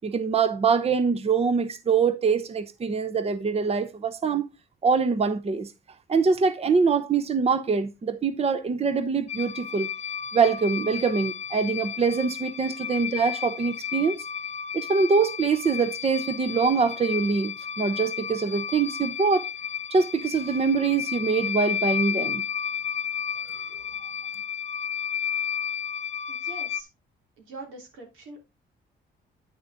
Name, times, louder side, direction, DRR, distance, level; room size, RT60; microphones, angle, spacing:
voice 1, 0.0-4.5 4.8-5.7 6.1-9.9 10.3-14.2 14.7-19.5 19.9-22.4 23.5-23.6, right 5 dB, 30° right, 0.7 m, -24 dB
sound 1, 9.3-26.8, left 8 dB, 35° left, 0.6 m, -32 dB
voice 2, 26.3-26.9 27.4-28.4, right 3 dB, 90° right, 3.2 m, -43 dB
9.4 x 6.3 x 3.5 m
cardioid pair, 90°, 20 cm